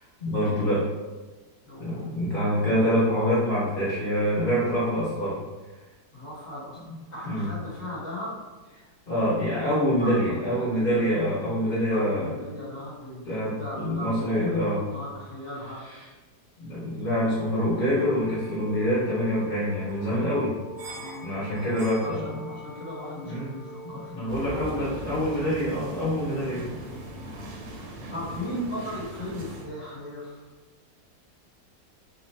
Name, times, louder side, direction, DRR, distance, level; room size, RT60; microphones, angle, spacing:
voice 1, 0.2-0.9 1.8-5.4 7.2-7.5 9.1-12.3 13.2-14.8 16.6-20.5 21.2-22.4 23.3-23.5 23.8-26.7, equal, 50° left, -9 dB, 0.7 m, -26 dB
voice 2, 1.6-2.1 6.1-6.8 7.1-8.3 9.9-11.2 11.9-15.8 20.9-21.4 22.0-25.4 26.4-26.7 28.1-30.5, left 1 dB, 20° left, -8 dB, 1.1 m, -37 dB
sound 1, 18.2-29.9, equal, 70° right, 0.7 m, -45 dB
sound 2, 24.3-29.6, right 1 dB, 90° right, 1.2 m, -39 dB
2.7 x 2.2 x 3.1 m, 1.2 s
omnidirectional pair, 1.8 m